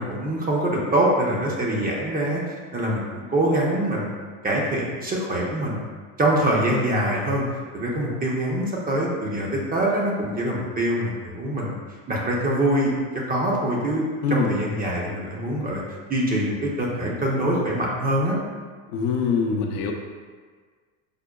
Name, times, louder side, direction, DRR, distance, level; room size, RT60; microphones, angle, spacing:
voice 1, 0.0-4.1 4.4-5.9 6.2-7.4 7.7-11.8 12.1-12.9 13.3-15.8 16.1-18.4, right 1 dB, 20° right, -3 dB, 0.5 m, -24 dB
voice 2, 14.2-14.6 18.9-19.9, left 5 dB, 85° left, 2 dB, 0.6 m, -23 dB
5.0 x 2.1 x 2.2 m, 1.5 s
supercardioid pair, 100°, 45 cm